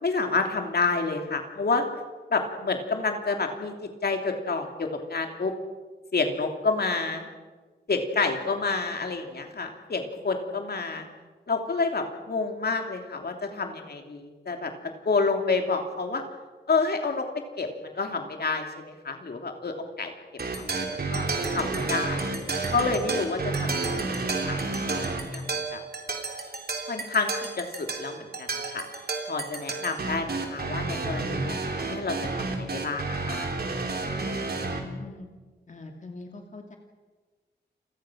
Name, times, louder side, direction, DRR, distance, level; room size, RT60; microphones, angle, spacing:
voice 1, 0.0-1.9 2.3-5.5 6.1-7.3 7.9-11.1 11.5-14.7 15.0-16.2 16.7-17.3 17.6-20.1 20.5-22.2 22.7-24.6 24.9-25.8 26.9-28.9 29.3-31.6 31.9-33.5, left 4 dB, 60° left, 4 dB, 3.0 m, -29 dB
sound 1, 20.4-34.8, right 3 dB, 60° right, 3.6 m, -31 dB
voice 2, 34.6-35.3 35.7-36.8, left 3 dB, 45° left, 3 dB, 2.6 m, -42 dB
30.0 x 24.0 x 6.3 m, 1.4 s
wide cardioid pair, 125°, 18 cm